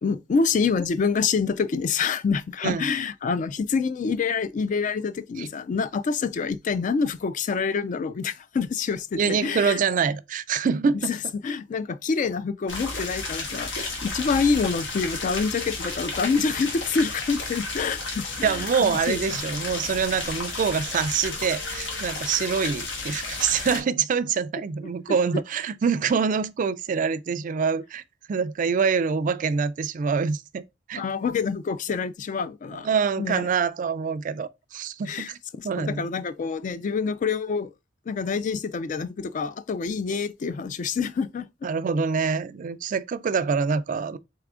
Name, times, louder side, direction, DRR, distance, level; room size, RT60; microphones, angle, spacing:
voice 1, 0.0-9.8 11.1-18.6 18.8-19.2 30.9-32.9 33.2-33.4 35.1-35.3 35.6-37.7 38.1-41.5, left 5 dB, 45° left, 0.3 m, -27 dB
voice 2, 9.1-11.1 18.4-28.0 28.3-30.6 30.9-31.0 32.8-35.4 35.6-36.1 41.6-44.2, right 6 dB, 45° right, 0.3 m, -25 dB
sound 1, 12.7-23.8, left 3 dB, 85° left, 1.4 m, -32 dB
3.6 x 3.3 x 3.6 m
head